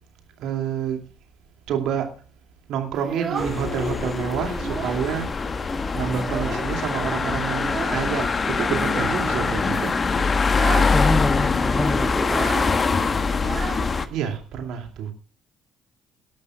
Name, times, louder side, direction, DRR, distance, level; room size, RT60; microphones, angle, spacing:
voice 1, 0.4-1.0 1.7-2.1 2.7-5.3 5.9-10.0 14.1-15.1, right 8 dB, 65° right, 2.6 m, -28 dB
Child speech kid speaking, 2.9-4.0 4.3-5.1 5.4-5.5 5.8-6.9 7.6-8.1 8.9-9.4 9.9-10.1 10.4-11.0 11.2-11.3 11.6-14.4, right 5 dB, 45° right, 1.8 m, -33 dB
sound 1, 3.4-14.1, left 4 dB, 35° left, 1.2 m, -23 dB
voice 2, 10.8-12.5, left 1 dB, 5° left, 0.8 m, -26 dB
18.5 x 12.0 x 2.4 m
hypercardioid pair, 50°, 0 cm